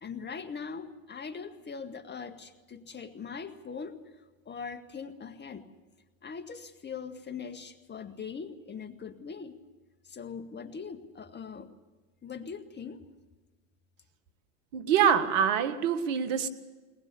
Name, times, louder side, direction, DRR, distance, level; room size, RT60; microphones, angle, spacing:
voice 1, 0.0-4.0 4.5-5.7 6.2-9.6 10.0-11.7 12.2-13.0, left 5 dB, 25° left, 8 dB, 1.9 m, -41 dB
voice 2, 14.7-16.5, right 8 dB, 70° right, 12 dB, 1.7 m, -25 dB
22.0 x 20.0 x 7.0 m, 1.3 s
hypercardioid pair, 85°, 39 cm